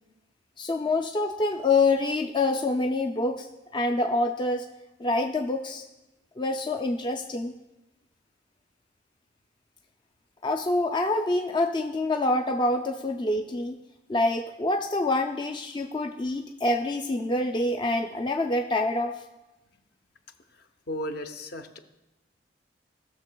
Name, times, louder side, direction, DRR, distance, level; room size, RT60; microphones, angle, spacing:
voice 1, 0.6-4.7 5.0-5.8 6.4-7.5 10.4-13.8 14.1-19.2, left 2 dB, 25° left, 3 dB, 0.4 m, -26 dB
voice 2, 20.5-21.8, left 1 dB, 60° left, 7 dB, 0.7 m, -36 dB
17.0 x 6.4 x 2.2 m, 0.99 s
head